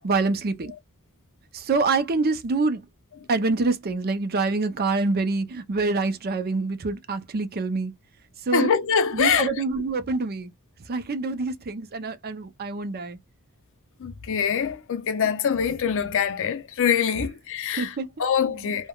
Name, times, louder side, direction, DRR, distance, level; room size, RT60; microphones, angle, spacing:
voice 1, 0.0-0.7 1.5-2.8 3.3-7.9 8.5-8.7 9.1-10.5 10.9-13.2 17.8-18.1 18.5-18.7, right 3 dB, 45° right, 0.5 m, -26 dB
voice 2, 8.5-9.6 14.0-17.9 18.2-18.9, left 7 dB, 60° left, 0.5 m, -24 dB
3.3 x 2.1 x 2.2 m
head